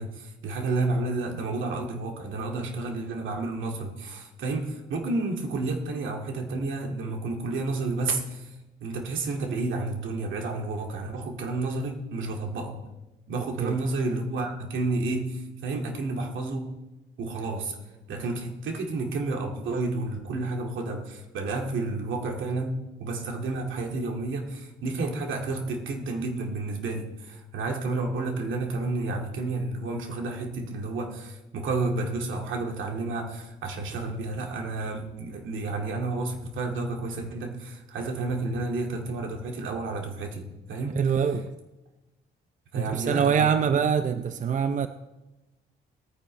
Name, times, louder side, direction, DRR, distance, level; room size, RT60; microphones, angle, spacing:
voice 1, 0.0-12.8 13.3-16.7 17.2-17.7 18.1-41.0 42.7-43.5, right 3 dB, 75° right, 2.2 m, -31 dB
voice 2, 13.3-13.8 40.9-41.5 42.7-44.9, right 7 dB, 40° right, 0.6 m, -25 dB
19.5 x 9.5 x 3.3 m
cardioid pair, 90°, 20 cm